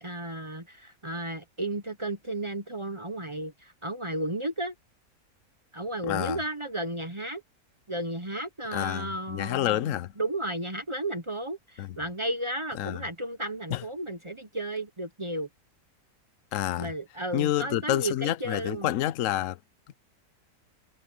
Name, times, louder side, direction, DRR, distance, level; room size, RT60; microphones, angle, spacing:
voice 1, 0.0-4.7 5.7-7.4 7.9-9.9 10.2-15.5 16.8-18.9, right 1 dB, 25° right, 0.7 m, -33 dB
voice 2, 6.1-6.4 8.7-10.1 11.8-12.0 12.8-13.0 13.7-13.8 16.5-16.9 17.3-19.6, left 13 dB, 60° left, 1.0 m, -28 dB
omnidirectional pair, 1.7 m